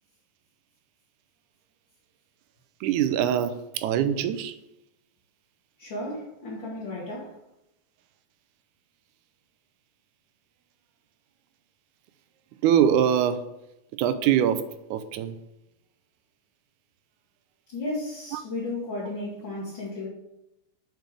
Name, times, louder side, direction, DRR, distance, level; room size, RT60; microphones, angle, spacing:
voice 1, 2.8-4.6 12.6-13.4 14.0-15.4 18.3-18.4, right 9 dB, 85° right, 11 dB, 2.0 m, -23 dB
voice 2, 5.8-7.4 17.7-20.1, left 2 dB, 45° left, -5 dB, 1.8 m, -34 dB
6.8 x 4.5 x 5.0 m, 0.86 s
omnidirectional pair, 3.5 m